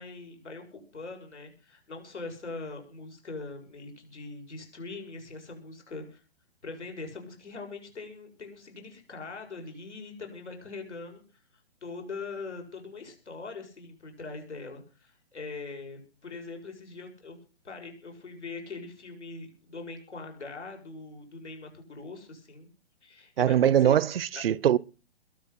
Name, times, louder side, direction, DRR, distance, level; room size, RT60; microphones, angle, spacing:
voice 1, 0.0-6.2 6.6-11.2 11.8-17.4 17.6-22.7 23.0-24.0 24.3-24.4, left 3 dB, 85° left, 7.1 m, -42 dB
voice 2, 23.4-24.8, right 10 dB, 60° right, 0.7 m, -22 dB
22.0 x 8.0 x 6.0 m
hypercardioid pair, 140°, 34 cm